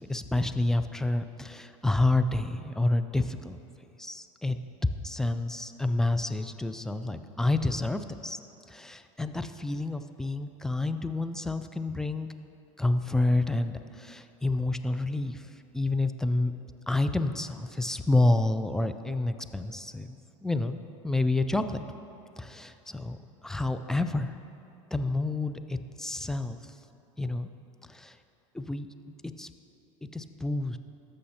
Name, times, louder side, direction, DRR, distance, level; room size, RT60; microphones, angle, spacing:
voice 1, 0.0-3.6 4.0-4.6 5.0-8.4 8.7-12.3 12.8-15.5 15.7-16.5 16.9-21.8 22.4-23.2 23.4-24.3 24.9-26.6 27.2-27.5 27.9-28.2 28.5-28.9 29.4-29.5 30.1-30.8, left 2 dB, 5° left, 9 dB, 0.3 m, -29 dB
14.0 x 6.4 x 2.9 m, 2.8 s
hypercardioid pair, 95°, 17 cm